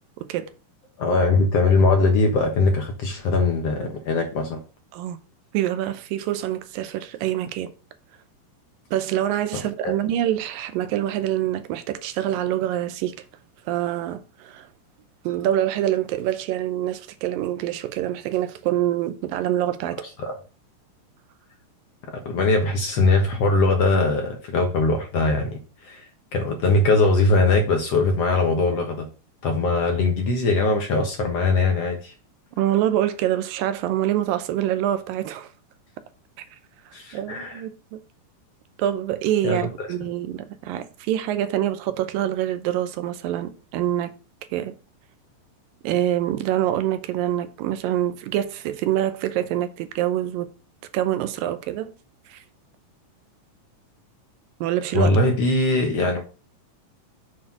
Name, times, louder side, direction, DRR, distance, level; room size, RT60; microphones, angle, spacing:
voice 1, 0.2-0.5 4.9-5.2 5.5-7.7 8.9-13.2 13.7-14.7 15.2-20.0 32.6-35.5 36.4-36.5 37.1-38.0 38.8-44.1 44.5-44.8 45.8-50.5 50.9-51.9 52.3-52.4 54.6-55.2, right 12 dB, 85° right, 2.4 m, -25 dB
voice 2, 1.0-4.6 9.8-10.0 20.2-20.4 22.3-29.1 29.4-32.1 36.9-37.6 39.4-39.9 54.9-56.2, left 3 dB, 60° left, 1.8 m, -21 dB
7.6 x 4.4 x 5.8 m
omnidirectional pair, 4.0 m